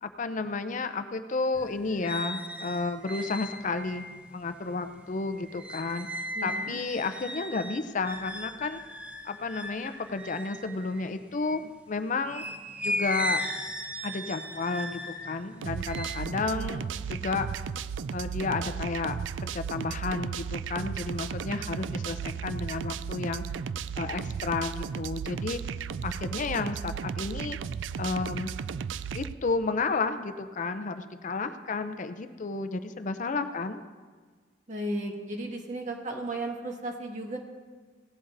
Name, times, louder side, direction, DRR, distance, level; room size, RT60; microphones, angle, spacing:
voice 1, 0.0-6.1 6.4-8.8 9.2-12.4 12.8-13.4 14.0-17.5 18.1-19.2 19.4-23.4 24.0-25.6 26.0-27.6 28.0-28.5 29.1-33.8, left 3 dB, 45° left, 10 dB, 0.5 m, -32 dB
sound 1, 1.5-11.7 12.2-17.7 18.1-18.7, equal, 5° right, 0.7 m, -37 dB
voice 2, 6.3-6.8 16.5-17.0 34.7-37.4, right 1 dB, 40° right, 1 dB, 1.6 m, -35 dB
sound 2, 15.6-29.3, right 7 dB, 80° right, 0.3 m, -35 dB
17.5 x 12.0 x 2.6 m, 1.5 s
head